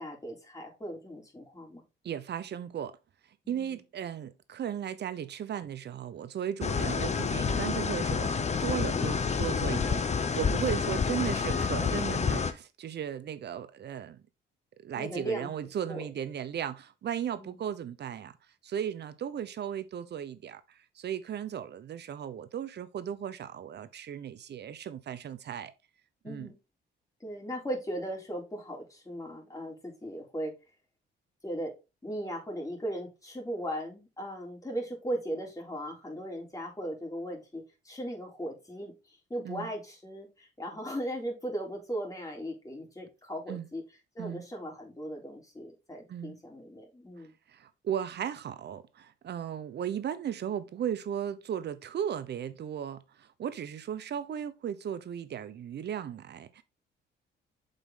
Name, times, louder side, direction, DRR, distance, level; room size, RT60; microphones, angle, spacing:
voice 1, 0.0-1.8 3.4-3.7 10.8-10.9 15.0-15.5 15.9-16.0 17.4-17.6 26.2-26.5 27.2-30.5 31.4-31.7 32.0-43.8 44.2-47.3, right 1 dB, 15° left, 3.7 m, -38 dB
voice 2, 2.0-3.0 3.5-14.2 14.8-18.3 18.6-25.7 26.2-26.5 39.4-39.7 43.5-43.7 44.2-44.5 46.1-46.4 47.2-56.6, right 9 dB, 60° right, 0.9 m, -36 dB
sound 1, 6.6-12.5, left 5 dB, 35° left, 0.9 m, -29 dB
7.2 x 5.4 x 3.8 m
cardioid pair, 90°, 20 cm